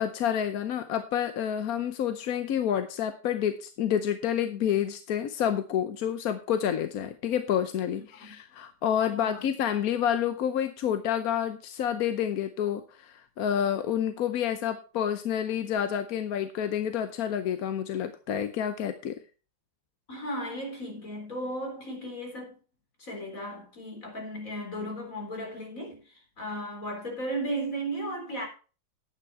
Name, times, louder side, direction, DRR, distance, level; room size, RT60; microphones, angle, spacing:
voice 1, 0.0-19.2, left 9 dB, 65° left, 1.1 m, -29 dB
voice 2, 9.1-9.5 20.1-22.6 23.0-28.5, right 1 dB, 45° left, 4.4 m, -35 dB
10.5 x 8.9 x 4.5 m
omnidirectional pair, 1.9 m